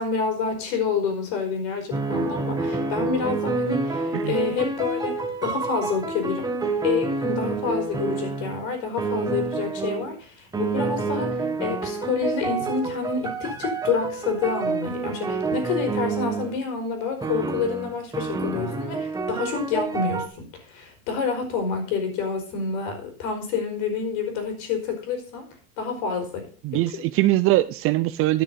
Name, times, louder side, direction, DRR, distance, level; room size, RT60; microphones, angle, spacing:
voice 1, 0.0-6.5 6.8-25.5 25.8-26.5 26.7-26.8, left 5 dB, 65° left, 4.5 m, -28 dB
sound 1, 1.9-8.7 9.0-10.1 10.5-16.6 17.2-20.3, right 3 dB, 10° right, 1.2 m, -28 dB
voice 2, 26.6-28.4, right 16 dB, 35° right, 0.5 m, -22 dB
10.5 x 6.2 x 6.8 m
supercardioid pair, 145°, 42 cm